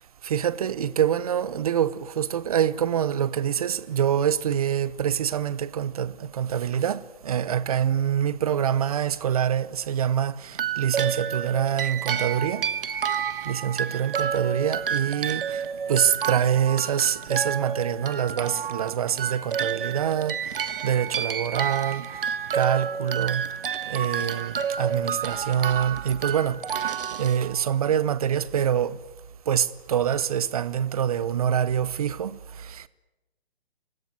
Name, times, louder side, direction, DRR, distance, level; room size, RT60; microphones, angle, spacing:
voice 1, 0.2-12.7 13.5-15.6 15.9-22.2 22.5-23.4 23.9-26.9 27.2-29.0 29.5-32.8, right 9 dB, 35° right, 0.9 m, -25 dB
sound 1, 10.5-27.9, right 7 dB, 60° right, 1.5 m, -30 dB
28.5 x 17.5 x 9.4 m
hypercardioid pair, 160°, 32 cm